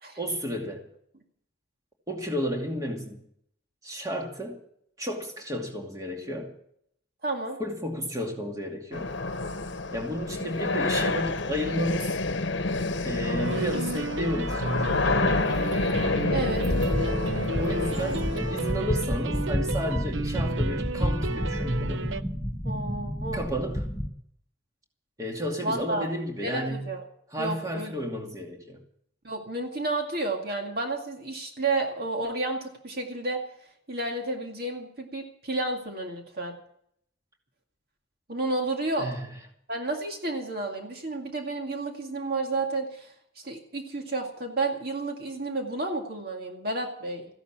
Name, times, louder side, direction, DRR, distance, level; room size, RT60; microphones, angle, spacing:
voice 1, 0.2-0.9 2.1-3.2 3.8-4.6 5.0-6.5 7.6-9.1 9.9-12.1 13.0-15.5 17.6-22.0 23.3-23.9 25.2-26.9 27.3-28.8 39.0-39.3, equal, 20° right, 1 dB, 2.5 m, -32 dB
voice 2, 7.2-7.6 16.3-16.7 22.6-23.4 25.6-26.1 26.4-27.0 27.4-27.9 29.2-33.4 33.9-36.6 38.3-39.1 39.7-47.3, right 2 dB, 50° right, 2 dB, 2.2 m, -31 dB
sound 1, 8.9-18.7, left 3 dB, 65° left, 1.0 m, -28 dB
sound 2, 13.4-22.2, right 3 dB, 70° right, 0.7 m, -33 dB
sound 3, 16.5-24.1, equal, 15° left, 1.3 m, -30 dB
15.0 x 11.5 x 7.4 m, 0.69 s
head